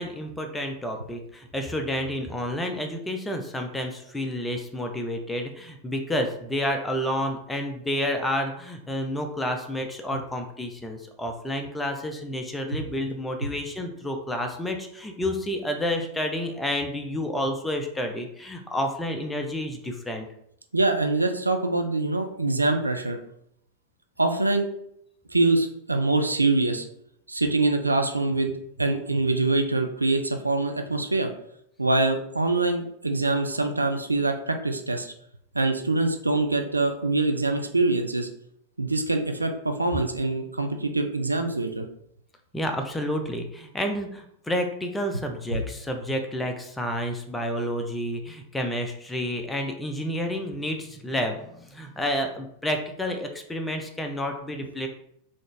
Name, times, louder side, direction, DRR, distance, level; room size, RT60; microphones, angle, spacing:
voice 1, 0.0-20.3 42.5-54.9, equal, 10° left, 4 dB, 0.6 m, -30 dB
voice 2, 20.7-23.2 24.2-24.7 25.3-26.8 27.3-28.5 28.8-31.3 31.8-35.1 35.5-38.3 38.8-41.9 45.5-45.6, right 2 dB, 80° right, 5 dB, 0.4 m, -24 dB
3.8 x 2.5 x 3.3 m, 0.73 s
figure-of-eight pair, 90°, 0 cm